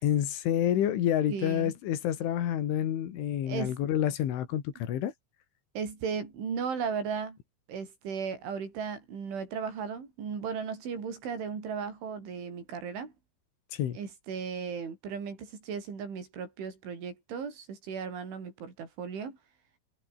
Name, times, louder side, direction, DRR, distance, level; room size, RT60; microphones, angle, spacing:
voice 1, 0.0-5.1 13.7-14.0, left 11 dB, 80° left, 5.0 m, -28 dB
voice 2, 1.3-1.7 3.4-3.8 5.7-7.4 7.7-13.1 13.9-19.4, right 6 dB, 80° right, 8.5 m, -36 dB
omnidirectional pair, 5.4 m